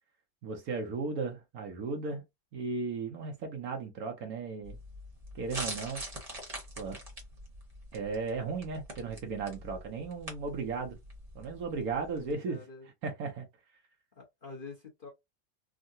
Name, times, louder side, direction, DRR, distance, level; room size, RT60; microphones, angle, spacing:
voice 1, 0.4-2.2 2.5-4.8 5.3-6.0 6.8-7.0 7.9-11.0 11.3-12.6 13.0-13.5, right 4 dB, 65° right, 1.1 m, -35 dB
sound 1, 4.6-12.3, right 1 dB, 25° right, 1.0 m, -44 dB
voice 2, 12.2-12.9 14.2-15.1, left 4 dB, 40° left, 0.9 m, -47 dB
3.7 x 2.2 x 2.6 m
omnidirectional pair, 1.8 m